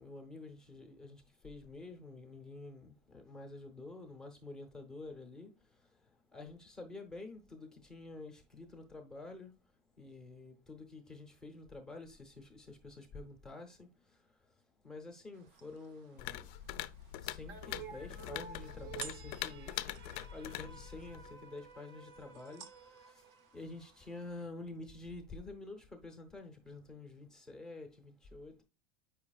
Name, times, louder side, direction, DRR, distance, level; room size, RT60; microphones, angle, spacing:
voice 1, 0.0-5.5 6.3-9.5 10.0-13.9 14.8-16.5 17.2-19.9 20.3-22.6 23.5-28.6, left 3 dB, ahead, 0.8 m, -49 dB
sound 1, 15.3-24.5, right 8 dB, 65° right, 0.9 m, -56 dB
sound 2, 16.2-21.4, left 13 dB, 50° left, 0.5 m, -43 dB
sound 3, 17.5-24.0, right 7 dB, 35° right, 0.6 m, -52 dB
8.2 x 5.6 x 2.3 m
supercardioid pair, 175°, 30 cm